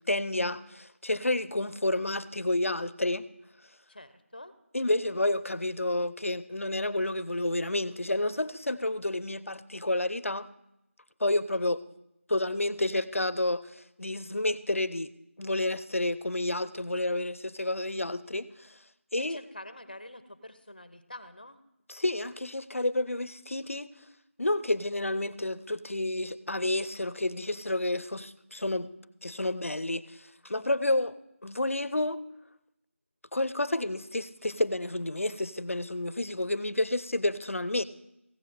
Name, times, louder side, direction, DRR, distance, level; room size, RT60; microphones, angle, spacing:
voice 1, 0.1-3.2 4.7-10.5 11.2-11.8 12.3-15.1 15.4-18.8 19.1-19.4 21.9-23.9 24.4-28.9 29.2-31.2 31.4-32.2 33.3-37.8, left 1 dB, 70° left, 17 dB, 0.7 m, -30 dB
voice 2, 3.9-4.5 19.2-21.6, left 1 dB, 40° left, 12 dB, 0.8 m, -46 dB
15.5 x 5.6 x 6.9 m, 0.85 s
figure-of-eight pair, 180°, 8 cm